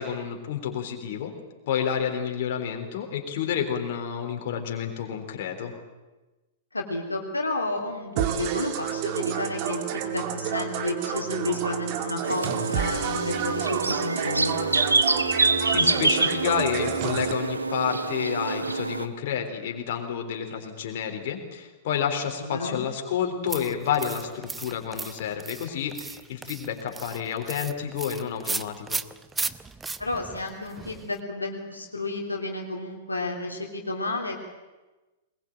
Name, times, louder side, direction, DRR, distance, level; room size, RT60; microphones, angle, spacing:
voice 1, 0.0-1.3 1.7-5.7 15.7-29.0, left 8 dB, 50° left, 3 dB, 3.7 m, -30 dB
voice 2, 6.7-14.6 22.4-22.8 30.0-34.4, left 2 dB, 85° left, 0 dB, 3.2 m, -31 dB
sound 1, 8.2-17.3, right 8 dB, 40° right, 2.4 m, -30 dB
sound 2, 12.2-19.1, right 3 dB, 80° right, 1.1 m, -26 dB
sound 3, 23.5-31.2, right 4 dB, 10° right, 0.8 m, -36 dB
21.5 x 21.5 x 9.0 m, 1.1 s
figure-of-eight pair, 105°, 0 cm